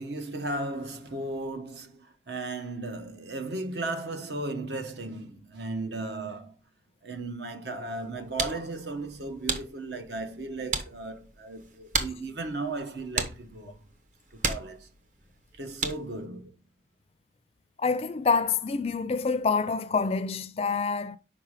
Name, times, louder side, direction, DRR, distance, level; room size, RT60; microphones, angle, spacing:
voice 1, 0.0-6.5 7.0-13.8 14.4-14.9 15.5-16.5, right 2 dB, 70° right, 1.0 m, -35 dB
sound 1, 8.0-16.2, right 4 dB, 45° right, 0.9 m, -36 dB
voice 2, 17.8-21.2, left 4 dB, 35° left, 0.4 m, -27 dB
5.9 x 5.0 x 4.9 m
head